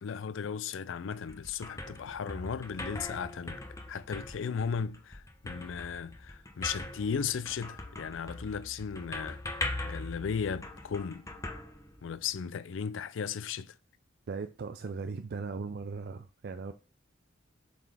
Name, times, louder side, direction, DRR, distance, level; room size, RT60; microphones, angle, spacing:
voice 1, 0.0-3.6 3.9-11.3 12.0-13.7, left 6 dB, 70° left, 0.4 m, -36 dB
sound 1, 1.0-12.4, left 2 dB, 15° left, 0.7 m, -41 dB
voice 2, 14.3-16.7, right 4 dB, 55° right, 0.4 m, -38 dB
7.4 x 4.1 x 3.4 m
head